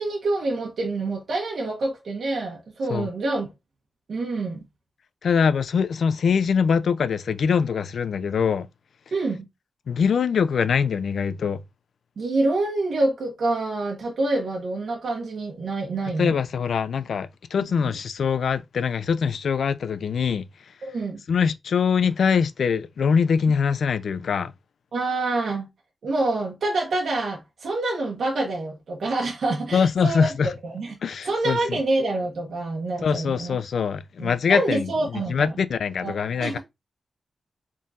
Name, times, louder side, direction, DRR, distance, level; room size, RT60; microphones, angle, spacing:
voice 1, 0.0-3.5 4.1-4.6 9.1-9.5 12.2-16.4 17.8-17.9 20.8-21.2 24.9-25.7 26.0-30.3 30.6-30.9 31.2-33.6 34.2-35.5 36.0-36.6, right 2 dB, 80° right, 1.1 m, -26 dB
voice 2, 5.2-8.7 9.9-11.6 16.2-20.4 21.3-24.5 29.7-30.5 31.0-31.8 33.0-36.6, left 6 dB, 85° left, 0.3 m, -23 dB
4.1 x 3.7 x 2.4 m
wide cardioid pair, 110°, 0 cm